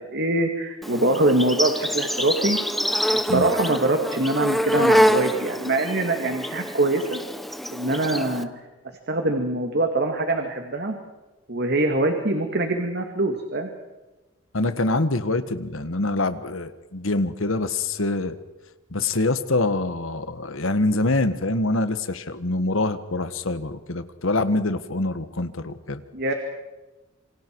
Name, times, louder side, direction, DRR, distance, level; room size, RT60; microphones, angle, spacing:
voice 1, 0.0-2.6 3.1-7.2 7.7-8.5 9.1-11.0 11.5-13.7 26.1-26.3, right 2 dB, 55° right, 4 dB, 2.2 m, -23 dB
Insect, 0.8-8.4, equal, ahead, 0.9 m, -25 dB
Strum, 4.7-8.9, right 2 dB, 70° right, 7.8 m, -47 dB
voice 2, 14.5-18.4 18.9-26.0, left 2 dB, 75° left, 11 dB, 1.5 m, -25 dB
28.0 x 26.0 x 4.7 m, 1.1 s
head